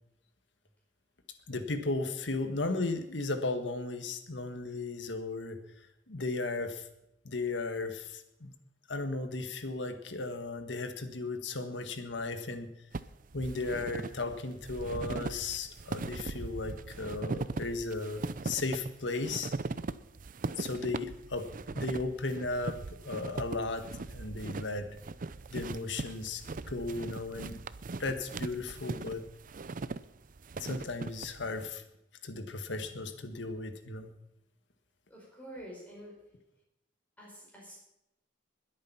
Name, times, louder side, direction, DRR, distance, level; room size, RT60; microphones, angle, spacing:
voice 1, 1.5-5.6 6.1-6.9 7.2-8.5 8.9-12.7 13.3-19.5 20.6-21.5 21.7-22.8 23.0-25.0 25.5-27.6 27.9-29.2 30.6-31.8 32.2-34.1, left 3 dB, 75° left, 7 dB, 1.6 m, -35 dB
sound 1, 12.9-31.7, right 3 dB, 50° right, 0.6 m, -39 dB
voice 2, 35.1-36.2 37.2-37.8, equal, 10° left, -4 dB, 4.8 m, -47 dB
21.0 x 8.6 x 5.8 m, 0.85 s
head